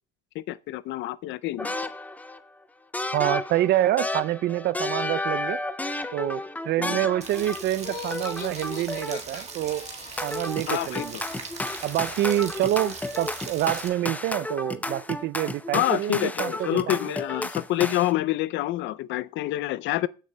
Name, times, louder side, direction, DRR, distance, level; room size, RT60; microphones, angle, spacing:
voice 1, 0.3-1.7 6.8-7.0 10.7-11.2 15.7-20.1, left 15 dB, 65° left, 0.4 m, -27 dB
sound 1, 1.6-2.4 2.9-7.8 8.1-9.4 10.2-18.1, left 2 dB, 5° left, 0.6 m, -32 dB
voice 2, 3.1-5.6 6.1-9.9 10.2-11.2 11.8-17.0, right 13 dB, 55° right, 0.4 m, -27 dB
Rain, 7.2-13.9, right 5 dB, 30° right, 1.6 m, -40 dB
Laughter, 7.8-10.6, left 5 dB, 45° left, 2.7 m, -42 dB
19.0 x 6.6 x 2.2 m
supercardioid pair, 100°, 21 cm